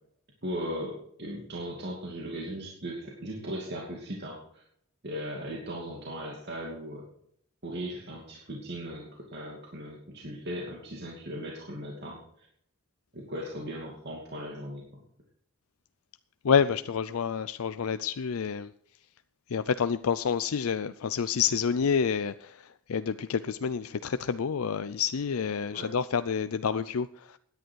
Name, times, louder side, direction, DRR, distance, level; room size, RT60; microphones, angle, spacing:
voice 1, 0.4-4.6 5.0-7.0 7.6-12.5 13.1-15.0 25.7-25.9, equal, 50° right, 2.6 m, -38 dB
voice 2, 16.4-18.7 19.5-27.4, left 6 dB, 80° left, 0.5 m, -28 dB
17.0 x 10.5 x 4.7 m
head